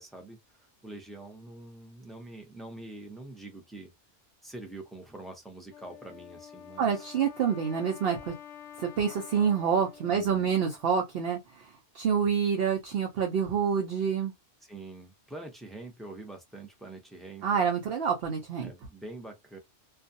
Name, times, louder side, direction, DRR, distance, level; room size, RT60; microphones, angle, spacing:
voice 1, 0.0-3.9 4.4-7.1 10.1-10.5 14.6-17.6 18.6-19.6, right 2 dB, ahead, 0.4 m, -45 dB
Wind instrument woodwind instrument, 5.7-11.1, left 9 dB, 80° left, 0.9 m, -49 dB
voice 2, 6.8-8.3 8.8-14.3 17.4-18.7, right 7 dB, 60° right, 0.8 m, -27 dB
2.4 x 2.3 x 2.6 m
omnidirectional pair, 1.2 m